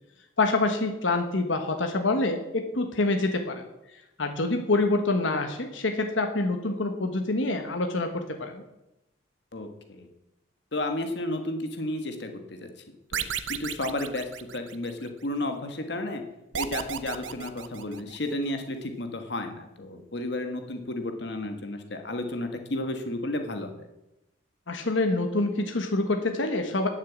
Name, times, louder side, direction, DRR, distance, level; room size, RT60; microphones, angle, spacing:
voice 1, 0.4-3.6 4.2-8.6 24.7-26.9, left 2 dB, 80° left, 5 dB, 1.3 m, -26 dB
voice 2, 9.5-10.1 10.7-12.7 13.1-16.2 16.5-23.9, left 1 dB, 60° left, 6 dB, 1.4 m, -32 dB
sound 1, 13.1-15.1 16.5-18.3, right 8 dB, 80° right, 0.8 m, -34 dB
11.0 x 6.5 x 8.2 m, 0.93 s
head